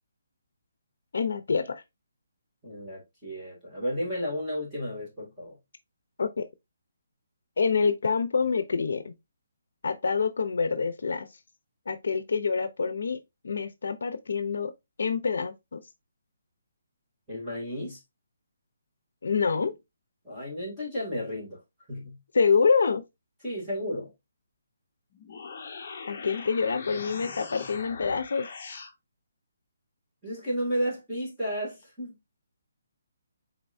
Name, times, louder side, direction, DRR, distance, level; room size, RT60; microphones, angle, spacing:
voice 1, 1.1-1.8 6.2-6.5 7.6-9.1 9.8-11.3 11.9-13.2 13.4-14.7 15.0-15.8 19.2-19.7 22.3-23.0 26.1-28.5, left 5 dB, 70° left, 0.6 m, -26 dB
voice 2, 2.6-5.6 17.3-18.0 20.2-21.6 21.9-22.2 23.4-24.1 30.2-32.2, equal, 5° right, 2.1 m, -33 dB
sound 1, 25.1-28.9, left 5 dB, 35° left, 0.9 m, -41 dB
4.5 x 4.0 x 2.6 m
hypercardioid pair, 175°, 0 cm